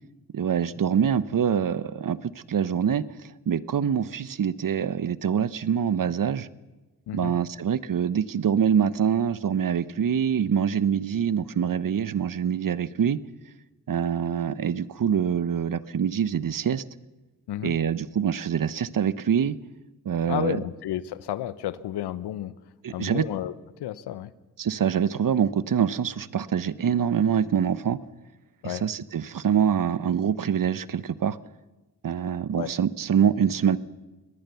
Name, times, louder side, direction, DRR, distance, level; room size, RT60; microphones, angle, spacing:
voice 1, 0.3-3.0 3.5-6.5 7.1-13.2 13.9-16.8 17.6-19.6 20.0-20.6 22.8-23.2 24.6-28.0 28.6-31.4 32.0-33.8, right 8 dB, 55° right, 16 dB, 1.1 m, -25 dB
voice 2, 20.2-22.5 22.9-23.5 23.8-24.3 28.6-28.8 32.6-32.7, left 12 dB, 85° left, 16 dB, 0.9 m, -32 dB
24.0 x 19.5 x 7.0 m, 1.1 s
supercardioid pair, 45°, 39 cm